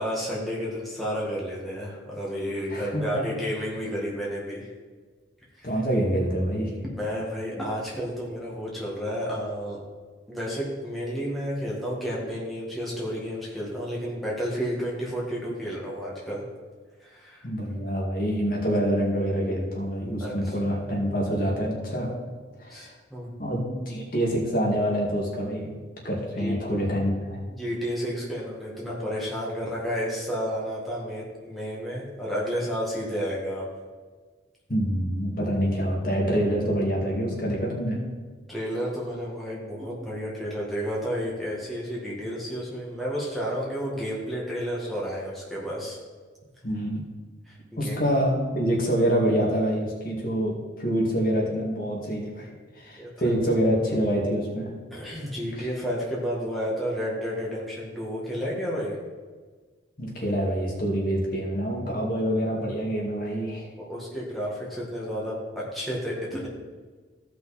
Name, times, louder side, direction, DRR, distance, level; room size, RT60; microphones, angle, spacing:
voice 1, 0.0-4.7 5.5-5.7 7.0-9.8 10.3-16.4 17.0-17.4 20.2-20.5 22.7-23.3 26.4-26.6 27.6-33.7 38.5-46.0 47.5-48.0 53.0-53.3 54.9-59.0 63.8-66.5, equal, ahead, -6 dB, 1.9 m, -31 dB
voice 2, 2.7-3.2 5.6-6.7 17.4-22.1 22.6-22.9 23.4-25.7 26.0-27.4 34.7-38.0 46.6-47.0 47.8-54.7 55.5-55.7 60.0-63.7, equal, 45° left, -3 dB, 2.1 m, -26 dB
15.0 x 5.7 x 4.2 m, 1.4 s
head